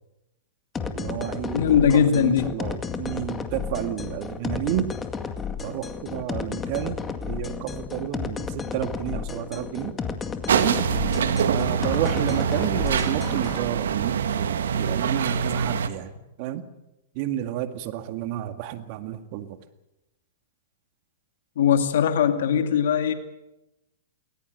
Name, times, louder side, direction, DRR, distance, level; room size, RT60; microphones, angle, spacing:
sound 1, 0.8-13.6, left 5 dB, 20° left, 2.0 m, -32 dB
voice 1, 0.9-4.9 5.6-7.0 7.3-10.0 10.5-10.8 11.5-16.1 16.4-16.6 17.1-19.6, right 12 dB, 50° right, 9 dB, 2.0 m, -31 dB
voice 2, 1.5-2.5 21.6-23.1, left 8 dB, 65° left, 8 dB, 2.3 m, -20 dB
sound 2, 10.5-15.9, right 7 dB, 75° right, 1.5 m, -24 dB
20.0 x 20.0 x 8.0 m, 0.95 s
hypercardioid pair, 110°, 0 cm